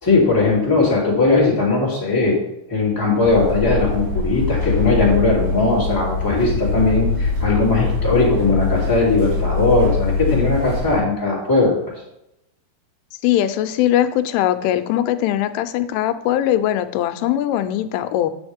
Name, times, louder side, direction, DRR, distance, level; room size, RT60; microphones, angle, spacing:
voice 1, 0.0-2.4 2.7-11.8, left 3 dB, 10° left, -6 dB, 0.9 m, -18 dB
sound 1, 3.2-11.0, left 4 dB, 50° right, 3.2 m, -23 dB
voice 2, 13.2-18.3, left 12 dB, 85° left, 9 dB, 3.0 m, -20 dB
8.9 x 7.1 x 3.5 m, 0.84 s
omnidirectional pair, 5.5 m